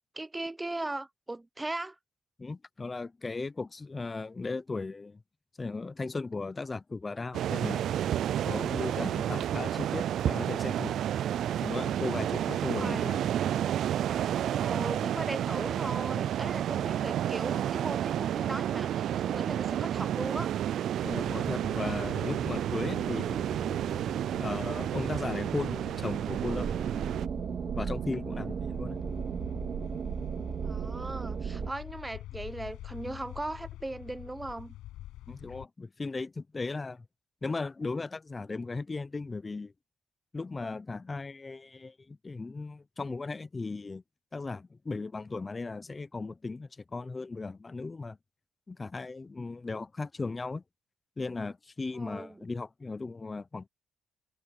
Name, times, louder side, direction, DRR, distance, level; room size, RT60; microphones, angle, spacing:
voice 1, 0.1-2.0 12.7-13.2 14.6-20.5 30.6-34.8 51.9-52.4, right 2 dB, 15° right, 0.7 m, -38 dB
voice 2, 2.4-5.2 5.6-7.8 8.5-11.0 11.6-13.3 21.0-23.5 24.4-26.7 27.7-29.0 35.3-37.0 37.4-39.7 40.3-44.0 44.3-48.2 48.7-50.6 51.2-53.7, left 3 dB, 25° left, 0.7 m, -36 dB
sound 1, 7.3-27.3, right 11 dB, 70° right, 0.3 m, -31 dB
sound 2, 21.0-35.7, left 14 dB, 90° left, 6.3 m, -47 dB
sound 3, 23.0-31.7, right 7 dB, 55° right, 2.0 m, -37 dB
cardioid pair, 90°, 0 cm